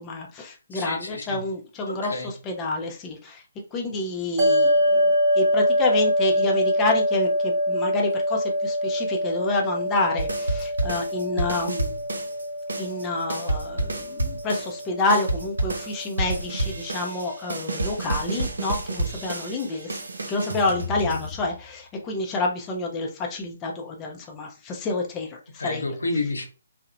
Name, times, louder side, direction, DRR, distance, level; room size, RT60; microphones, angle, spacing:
voice 1, 0.0-2.1 2.5-3.4 3.7-12.0 12.8-25.8, left 2 dB, 20° left, 1 dB, 0.4 m, -28 dB
voice 2, 0.7-1.4 1.9-2.3 25.6-26.4, left 2 dB, 85° left, 4 dB, 0.7 m, -30 dB
sound 1, 4.4-16.9, equal, 30° right, 0.8 m, -25 dB
sound 2, 10.2-12.4 12.7-21.7, right 2 dB, 80° right, 0.6 m, -30 dB
2.8 x 2.0 x 2.4 m, 0.34 s
hypercardioid pair, 150°, 0 cm